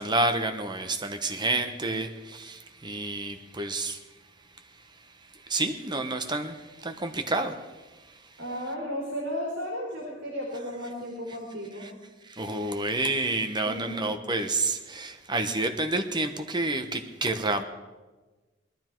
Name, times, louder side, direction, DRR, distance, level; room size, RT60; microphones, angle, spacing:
voice 1, 0.0-4.0 4.9-5.1 5.3-8.4 11.8-11.9 12.2-17.6, right 2 dB, 25° right, 6 dB, 1.0 m, -29 dB
voice 2, 8.4-11.9 13.6-14.2, equal, 65° right, -3 dB, 3.7 m, -34 dB
20.0 x 12.0 x 4.6 m, 1.2 s
head